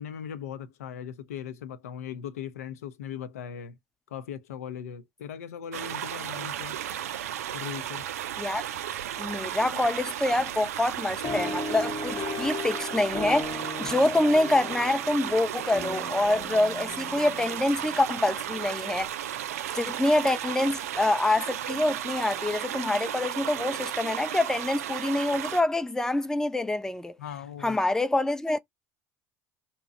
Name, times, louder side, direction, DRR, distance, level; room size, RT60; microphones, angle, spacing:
voice 1, 0.0-3.8 4.1-6.8 7.5-8.1 13.8-13.9 27.2-27.8, left 8 dB, 85° left, 0.6 m, -39 dB
sound 1, 5.7-25.6, right 11 dB, 85° right, 0.4 m, -34 dB
voice 2, 9.2-19.1 19.7-27.2 27.6-28.6, left 2 dB, 5° left, 0.5 m, -26 dB
sound 2, 11.2-18.1, left 3 dB, 40° left, 1.0 m, -37 dB
2.8 x 2.2 x 4.1 m
hypercardioid pair, 75°, 8 cm